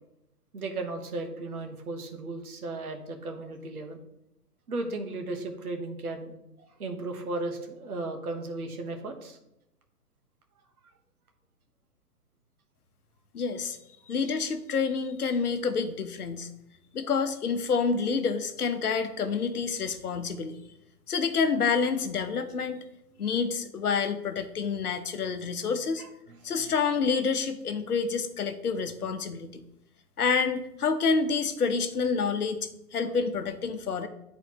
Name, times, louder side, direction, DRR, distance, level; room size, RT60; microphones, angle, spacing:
voice 1, 0.5-4.0 4.7-6.3 6.8-9.4 26.0-26.4, right 2 dB, 65° right, 4 dB, 1.3 m, -35 dB
voice 2, 13.3-13.8 14.1-16.5 16.9-20.6 21.1-22.8 23.2-26.0 26.4-29.6 30.2-34.1, left 5 dB, 70° left, 8 dB, 0.9 m, -28 dB
10.5 x 4.2 x 3.0 m, 0.85 s
figure-of-eight pair, 125°, 47 cm